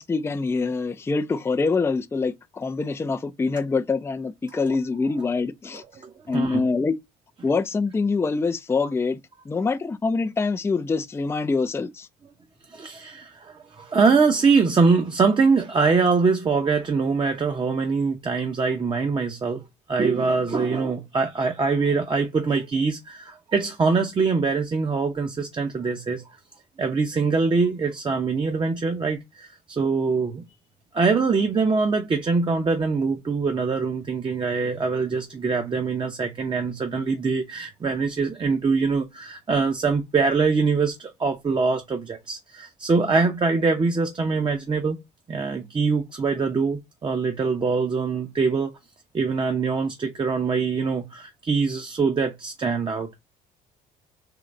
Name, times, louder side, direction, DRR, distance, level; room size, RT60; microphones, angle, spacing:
voice 1, 0.0-5.8 6.3-7.0 7.4-9.2 9.5-12.1, left 4 dB, 15° left, 0.5 m, -25 dB
voice 2, 5.9-6.6 12.7-19.6 19.9-26.2 26.8-30.4 30.9-45.0 45.3-48.7 49.1-53.2, right 4 dB, 30° right, 0.8 m, -23 dB
3.8 x 3.0 x 4.2 m
cardioid pair, 110°, 17 cm